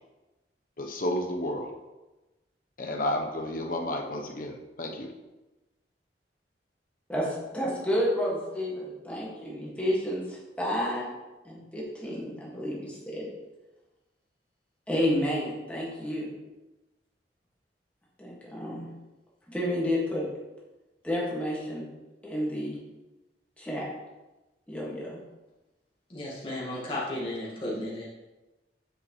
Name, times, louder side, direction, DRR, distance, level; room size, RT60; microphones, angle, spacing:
voice 1, 0.8-1.7 2.8-5.1, left 1 dB, 50° left, 2 dB, 0.9 m, -31 dB
voice 2, 7.1-11.1 11.4-13.3 14.9-16.3 18.2-18.9 19.5-20.3 21.0-21.9 22.2-22.8 23.6-23.9 24.7-25.2, equal, 10° left, -5 dB, 1.9 m, -30 dB
voice 3, 26.1-28.1, left 1 dB, 30° left, -6 dB, 1.9 m, -34 dB
7.9 x 6.2 x 3.2 m, 1.1 s
head